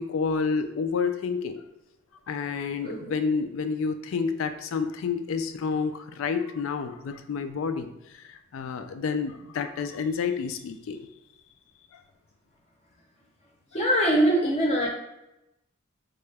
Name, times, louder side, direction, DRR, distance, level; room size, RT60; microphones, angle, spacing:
voice 1, 0.0-1.6 2.3-7.9 8.2-11.1, left 5 dB, 70° left, 9 dB, 0.4 m, -29 dB
voice 2, 2.8-3.1 13.7-14.9, right 1 dB, 30° left, -1 dB, 0.7 m, -23 dB
3.7 x 2.3 x 3.2 m, 0.89 s
head